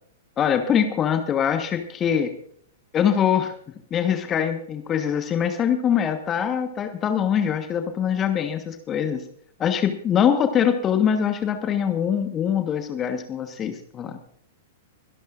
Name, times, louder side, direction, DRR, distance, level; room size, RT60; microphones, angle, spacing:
voice 1, 0.4-2.3 2.9-3.5 3.9-9.2 9.6-14.2, left 8 dB, 25° left, 7 dB, 1.3 m, -23 dB
24.0 x 12.5 x 2.6 m, 0.63 s
figure-of-eight pair, 105°, 0 cm